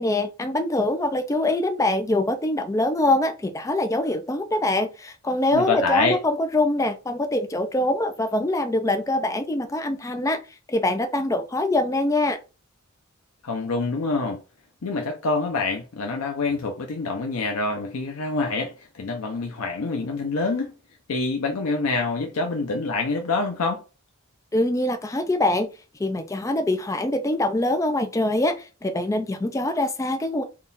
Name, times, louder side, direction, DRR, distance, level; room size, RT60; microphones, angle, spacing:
voice 1, 0.0-10.4 10.7-12.4 24.5-25.7 26.0-30.4, left 1 dB, 15° left, 0.4 m, -24 dB
voice 2, 5.5-6.2 13.4-14.4 14.8-20.7 21.1-23.8, left 3 dB, 90° left, 0.6 m, -26 dB
3.7 x 2.3 x 3.9 m
head